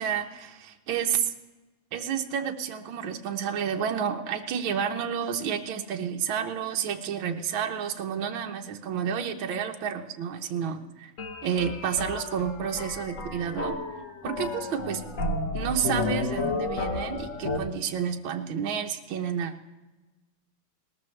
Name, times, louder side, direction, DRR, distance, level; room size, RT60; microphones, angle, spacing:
voice 1, 0.0-1.3 1.9-11.1 11.4-13.8 14.2-15.0 15.5-19.5, right 8 dB, 75° right, 4 dB, 1.6 m, -30 dB
sound 1, 11.2-17.6, left 3 dB, 45° left, 1.3 m, -32 dB
19.5 x 13.5 x 3.2 m, 1.1 s
omnidirectional pair, 2.3 m